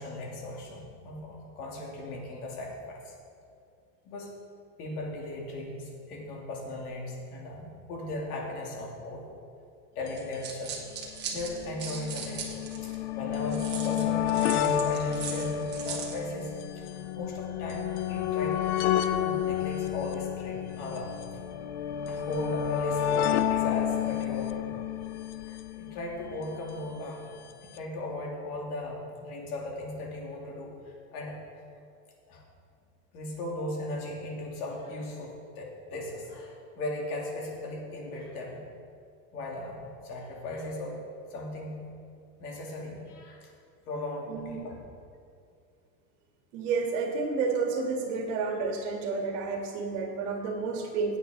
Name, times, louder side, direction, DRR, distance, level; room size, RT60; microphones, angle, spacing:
voice 1, 0.0-3.1 4.0-4.3 4.8-9.3 9.9-10.8 11.3-18.6 19.1-21.2 22.1-24.8 25.4-31.4 32.3-32.4 33.1-38.6 39.3-41.0 41.3-41.8 42.4-43.5 43.9-44.8, left 1 dB, 65° left, -2 dB, 3.1 m, -37 dB
sound 1, 10.1-10.2 10.3-10.4 11.3-26.5 27.5-27.6 27.8-27.9, left 10 dB, 45° left, 0.6 m, -30 dB
sound 2, 10.2-13.0 13.5-16.2, right 6 dB, 20° right, 1.2 m, -39 dB
voice 2, 46.5-51.2, right 4 dB, 50° right, 2 dB, 1.9 m, -30 dB
15.5 x 8.9 x 3.9 m, 2.4 s
supercardioid pair, 160°, 48 cm